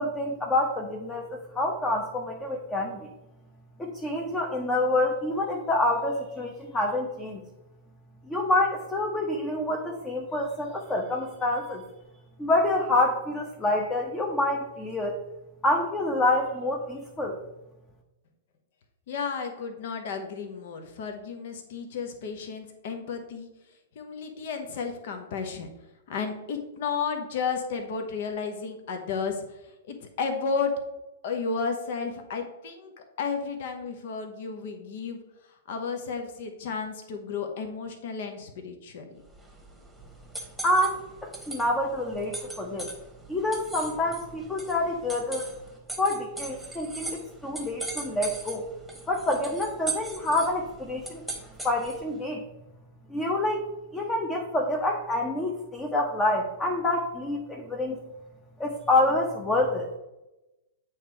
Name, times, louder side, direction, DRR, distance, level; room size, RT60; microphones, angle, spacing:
voice 1, 0.0-3.1 3.8-7.4 8.3-11.8 12.4-15.2 15.6-17.4 40.6-42.9 43.3-45.5 46.0-48.7 49.1-51.2 51.6-52.4 53.1-53.7 53.9-58.0 58.6-59.9, left 1 dB, 15° left, 1 dB, 0.9 m, -27 dB
voice 2, 19.1-23.5 23.9-25.7 26.1-30.7 31.2-39.2, left 5 dB, 60° left, 5 dB, 0.9 m, -33 dB
sound 1, 39.3-52.1, right 2 dB, ahead, 1.3 m, -40 dB
8.4 x 3.1 x 4.7 m, 0.97 s
figure-of-eight pair, 105°, 0 cm